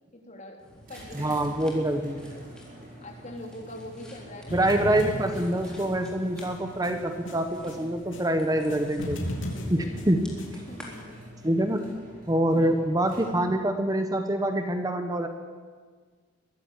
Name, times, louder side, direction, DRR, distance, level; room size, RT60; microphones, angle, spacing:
voice 1, 0.1-0.6 0.9-1.7 2.0-2.6 3.0-5.0 5.5-5.8 8.5-8.9 9.8-10.0 10.7-11.4 12.6-12.7, left 1 dB, 35° left, 2 dB, 3.3 m, -44 dB
sound 1, 0.6-10.9, equal, 5° left, 3.6 m, -51 dB
sound 2, 0.8-13.6, right 1 dB, 45° right, 7.1 m, -48 dB
voice 2, 1.1-2.2 4.5-9.2 9.7-10.2 11.4-11.9 12.3-15.3, right 1 dB, 20° right, 6 dB, 1.2 m, -25 dB
sound 3, 4.5-8.3 8.6-10.5, equal, 70° left, 3.6 m, -35 dB
22.5 x 15.0 x 8.4 m, 1.6 s
head